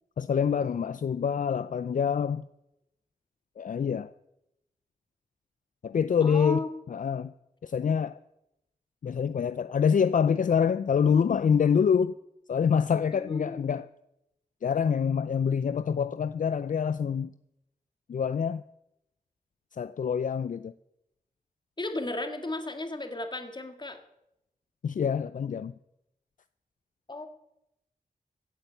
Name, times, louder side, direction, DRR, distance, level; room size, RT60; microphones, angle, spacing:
voice 1, 0.2-2.4 3.6-4.1 5.8-6.6 6.9-7.3 7.6-8.2 9.0-12.2 12.5-13.9 14.6-17.3 18.1-18.6 19.7-20.7 24.8-25.7, left 7 dB, 60° left, 14 dB, 0.4 m, -26 dB
voice 2, 6.2-6.7 13.1-13.6 21.8-24.0 27.1-27.3, left 2 dB, 30° left, 7 dB, 2.0 m, -34 dB
16.0 x 8.6 x 8.1 m, 0.85 s
wide cardioid pair, 80°, 15 cm